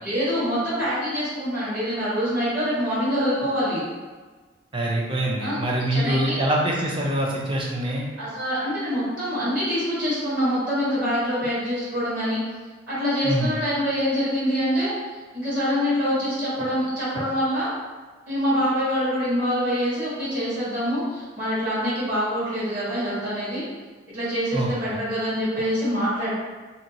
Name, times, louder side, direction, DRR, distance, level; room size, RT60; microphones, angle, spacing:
voice 1, 0.0-3.8 5.4-5.6 5.9-6.4 8.2-12.4 12.9-14.9 15.3-17.7 18.3-23.6 24.1-26.3, equal, 50° right, -10 dB, 1.4 m, -25 dB
voice 2, 4.7-8.0 13.2-13.5 24.5-25.0, right 1 dB, 25° right, -2 dB, 0.5 m, -24 dB
2.8 x 2.7 x 2.8 m, 1.3 s
head